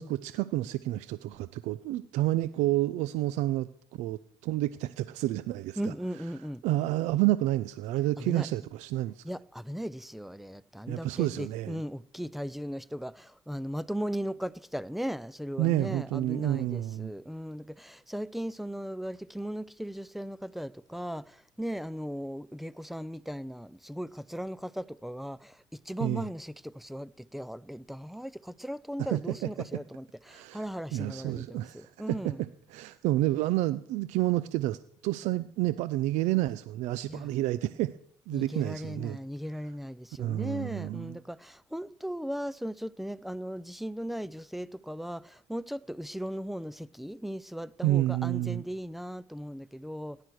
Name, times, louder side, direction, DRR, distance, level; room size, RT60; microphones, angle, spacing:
voice 1, 0.0-5.9 6.6-9.3 10.9-11.8 15.6-17.1 26.0-26.3 29.0-29.7 30.3-30.6 30.9-37.9 38.3-39.2 40.2-41.2 47.8-48.6, right 15 dB, 85° right, 0.6 m, -30 dB
voice 2, 5.8-6.6 8.2-8.5 9.2-32.4 37.1-37.3 38.3-50.2, equal, ahead, 0.6 m, -37 dB
17.5 x 11.0 x 6.4 m
cardioid pair, 100°, 12 cm